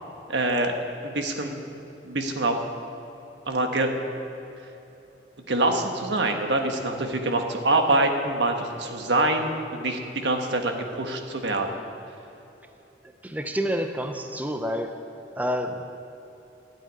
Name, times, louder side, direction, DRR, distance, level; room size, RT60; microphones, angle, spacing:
voice 1, 0.3-0.7 1.0-1.6 2.0-2.7 3.5-3.9 5.5-11.8, right 2 dB, 80° right, 4 dB, 1.4 m, -25 dB
voice 2, 13.2-14.9 15.4-16.0, equal, 10° right, 6 dB, 0.6 m, -28 dB
13.0 x 7.7 x 9.9 m, 3.0 s
head